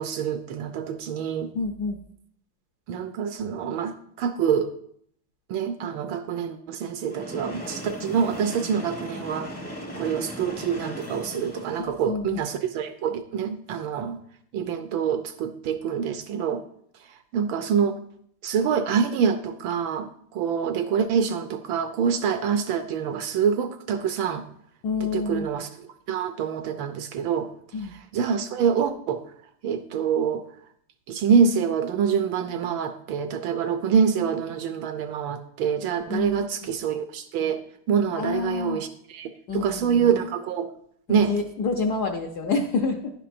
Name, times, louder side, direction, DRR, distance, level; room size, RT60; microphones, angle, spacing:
voice 1, 0.0-1.5 2.9-4.7 5.5-9.5 10.0-14.2 14.5-16.6 17.3-18.0 18.4-24.4 25.0-25.7 26.1-27.5 28.1-29.2 29.6-30.4 31.1-37.6 37.9-40.7 41.1-41.3, right 7 dB, 75° right, 8 dB, 1.3 m, -26 dB
voice 2, 1.5-2.0 11.8-12.4 24.8-25.5 27.7-27.9 36.1-36.7 38.1-38.8 39.5-40.1 41.1-43.1, left 4 dB, 65° left, 3 dB, 1.0 m, -28 dB
Train, 7.0-12.0, equal, 15° left, 0.5 m, -37 dB
10.5 x 10.0 x 2.6 m, 0.66 s
omnidirectional pair, 2.4 m